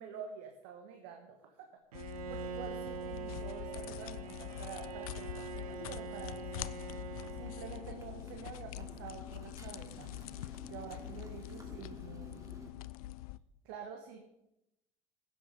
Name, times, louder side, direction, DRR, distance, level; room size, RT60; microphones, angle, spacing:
voice 1, 0.0-1.7 2.3-6.7 7.3-10.1 10.7-12.3 13.6-14.2, right 7 dB, 60° right, 4 dB, 1.4 m, -48 dB
sound 1, 1.9-13.4, left 16 dB, 70° left, 0.4 m, -44 dB
Bowed string instrument, 1.9-8.2, right 8 dB, 80° right, 0.5 m, -44 dB
Motorcycle, 5.5-12.7, right 2 dB, 15° right, 2.3 m, -54 dB
15.5 x 7.0 x 5.3 m, 0.88 s
figure-of-eight pair, 70°, 19 cm